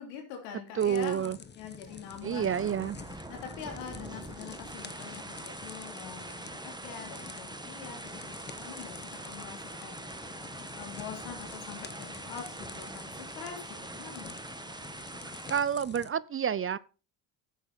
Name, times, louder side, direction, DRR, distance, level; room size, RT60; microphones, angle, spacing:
voice 1, 0.0-2.9 3.3-10.0 10.8-14.4, left 7 dB, 90° left, 3.0 m, -44 dB
sound 1, 0.8-16.1, left 5 dB, 20° left, 0.9 m, -48 dB
voice 2, 0.8-1.4 2.2-3.0 15.3-16.8, right 8 dB, 30° right, 0.4 m, -29 dB
sound 2, 1.7-15.6, right 2 dB, 10° right, 1.4 m, -44 dB
10.5 x 8.5 x 4.0 m
supercardioid pair, 70°, 48 cm